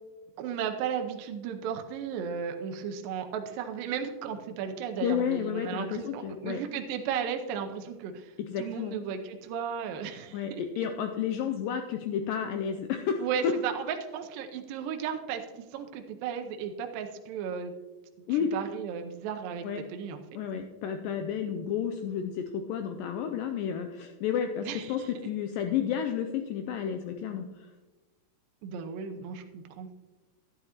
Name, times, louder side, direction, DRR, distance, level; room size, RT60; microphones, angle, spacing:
voice 1, 0.4-10.6 13.2-17.7 18.3-20.2 24.6-25.1 28.6-29.9, right 7 dB, 80° right, 5 dB, 2.2 m, -35 dB
voice 2, 5.0-6.6 8.4-9.0 10.3-13.2 18.3-18.5 19.6-19.8 20.4-27.5, left 8 dB, 85° left, 6 dB, 2.0 m, -31 dB
12.0 x 11.0 x 2.9 m, 1.2 s
omnidirectional pair, 4.5 m